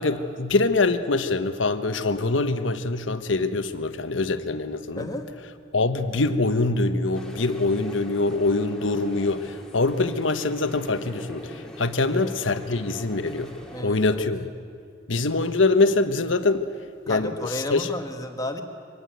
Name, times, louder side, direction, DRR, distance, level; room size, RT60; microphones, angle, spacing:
voice 1, 0.0-5.1 5.7-14.4 15.1-16.7 17.1-17.9, left 3 dB, 80° left, 10 dB, 1.2 m, -24 dB
voice 2, 5.0-5.3 12.0-12.3 13.7-14.2 17.1-18.6, left 1 dB, 20° left, 5 dB, 1.5 m, -33 dB
sound 1, 7.1-13.8, equal, 5° left, 2.3 m, -42 dB
24.0 x 18.0 x 9.2 m, 2.4 s
head